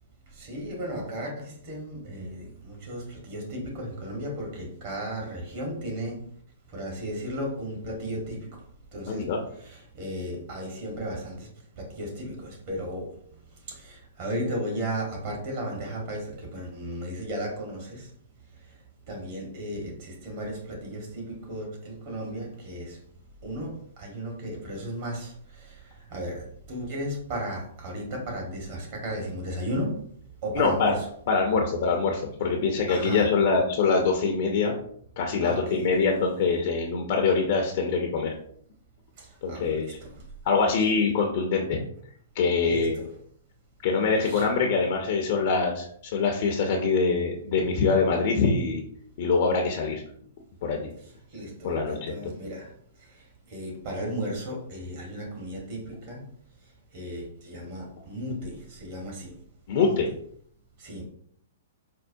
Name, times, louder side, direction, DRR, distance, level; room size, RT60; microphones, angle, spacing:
voice 1, 0.3-6.3 6.7-9.3 9.6-11.5 11.7-13.2 13.5-18.1 18.5-23.0 23.4-30.1 30.4-31.1 32.9-33.3 35.4-36.1 39.2-40.3 42.6-43.1 44.2-44.5 51.3-56.3 56.6-59.4 59.8-60.0 60.8-61.0, equal, 50° right, 1.3 m, -35 dB
voice 2, 9.1-9.4 30.6-30.9 31.3-34.7 35.2-38.3 39.4-40.0 40.4-41.8 42.3-43.0 43.8-45.9 46.1-48.8 49.2-50.0 50.6-50.9 51.6-52.1 59.7-60.1, left 4 dB, 55° left, 0.5 m, -24 dB
4.5 x 2.1 x 2.6 m
hypercardioid pair, 120°, 0 cm